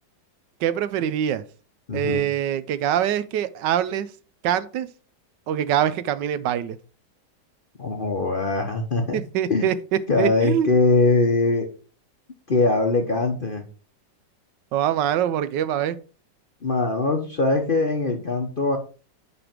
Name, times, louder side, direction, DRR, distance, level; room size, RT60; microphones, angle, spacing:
voice 1, 0.6-1.4 1.9-4.1 4.4-4.9 5.5-6.8 9.1-9.7 10.2-10.7 14.7-16.0, right 10 dB, 75° right, 1.2 m, -24 dB
voice 2, 1.9-2.2 7.8-9.2 9.5-9.7 10.1-11.7 12.5-13.6 16.6-18.8, left 3 dB, 40° left, 0.8 m, -22 dB
9.8 x 3.4 x 6.0 m
omnidirectional pair, 2.0 m